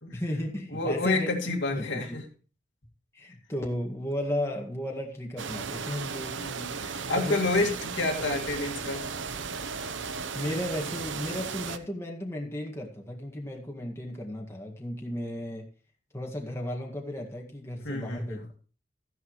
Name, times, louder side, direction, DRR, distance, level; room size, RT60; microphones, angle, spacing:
voice 1, 0.1-1.4 1.7-2.2 3.1-6.4 7.1-7.4 10.3-15.6 16.1-18.4, left 1 dB, 15° left, 0 dB, 1.8 m, -34 dB
voice 2, 0.7-2.2 6.4-9.1 17.8-18.4, left 2 dB, 75° left, 1 dB, 2.3 m, -29 dB
sound 1, 5.4-11.8, right 5 dB, 75° right, 0.9 m, -35 dB
14.0 x 10.5 x 3.1 m, 0.38 s
head